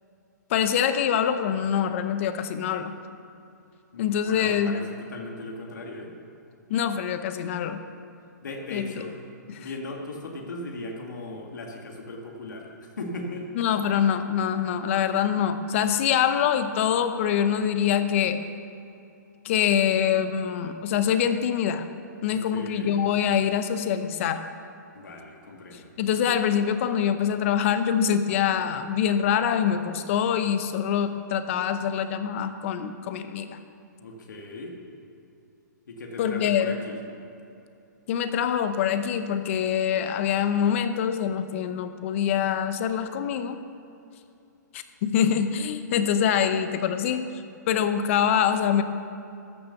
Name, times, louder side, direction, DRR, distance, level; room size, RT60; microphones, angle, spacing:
voice 1, 0.5-2.9 4.0-4.7 6.7-7.8 8.7-9.0 9.5-9.7 13.5-18.4 19.4-21.9 22.2-24.4 25.7-33.6 36.2-36.8 38.1-43.6 44.7-47.3 47.7-48.8, left 8 dB, 45° left, 10 dB, 0.8 m, -25 dB
voice 2, 3.9-6.1 8.4-9.1 9.6-13.5 22.3-23.0 25.0-25.9 34.0-34.8 35.9-37.0, left 2 dB, 75° left, 1 dB, 2.0 m, -38 dB
13.5 x 6.8 x 6.8 m, 2.7 s
hypercardioid pair, 140°, 10 cm